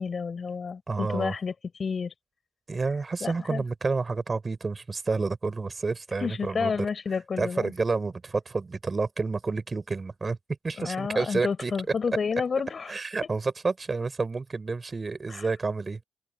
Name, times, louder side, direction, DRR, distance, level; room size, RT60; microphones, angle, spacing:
voice 1, 0.0-1.5 1.8-2.1 3.2-3.6 6.2-7.7 10.8-12.9 15.3-15.5, left 5 dB, 50° left, 4.5 m, -30 dB
voice 2, 0.9-1.3 2.7-6.7 7.4-10.4 10.6-11.7 12.9-16.0, right 4 dB, 35° right, 5.3 m, -29 dB
cardioid pair, 65°, 0 cm